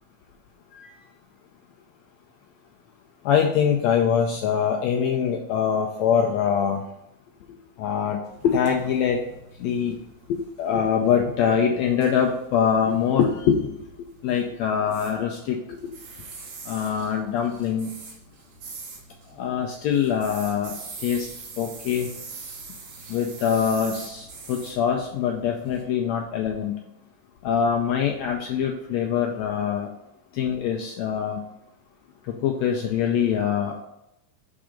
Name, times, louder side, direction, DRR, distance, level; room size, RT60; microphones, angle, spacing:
voice 1, 3.2-6.8 7.8-8.2 8.4-9.2 9.6-10.0 10.3-13.7 14.2-15.9 16.7-17.9 19.4-20.7 21.0-21.3 21.6-22.1 23.1-26.7 27.4-29.9 30.3-31.4 32.4-33.8, left 7 dB, 85° left, 1 dB, 1.5 m, -23 dB
sound 1, 8.2-25.8, right 4 dB, 85° right, 2.9 m, -44 dB
6.0 x 3.7 x 5.0 m, 0.85 s
omnidirectional pair, 3.7 m